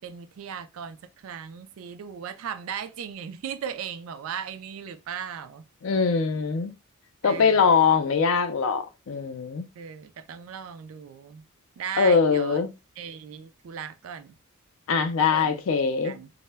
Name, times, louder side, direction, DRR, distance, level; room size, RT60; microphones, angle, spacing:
voice 1, 0.0-5.7 7.2-7.9 9.8-11.4 11.8-12.6 13.0-14.3 15.2-15.6 16.0-16.3, right 8 dB, 75° right, 0.3 m, -37 dB
voice 2, 5.8-6.7 7.2-9.7 12.0-12.7 14.9-16.2, left 5 dB, 70° left, 0.4 m, -22 dB
2.1 x 2.1 x 3.2 m
head